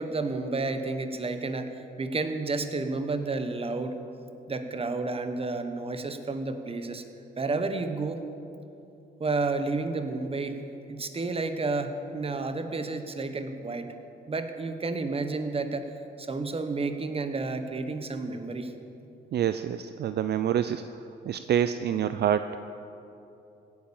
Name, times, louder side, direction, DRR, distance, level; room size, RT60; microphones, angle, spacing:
voice 1, 0.0-4.0 4.5-7.0 7.4-8.2 9.2-10.6 10.9-13.9 14.3-15.9 16.2-18.7, right 3 dB, 30° right, 8 dB, 1.3 m, -31 dB
voice 2, 19.3-20.8 21.2-22.6, right 9 dB, 55° right, 11 dB, 0.5 m, -26 dB
16.5 x 9.7 x 7.2 m, 2.8 s
cardioid pair, 90°, 20 cm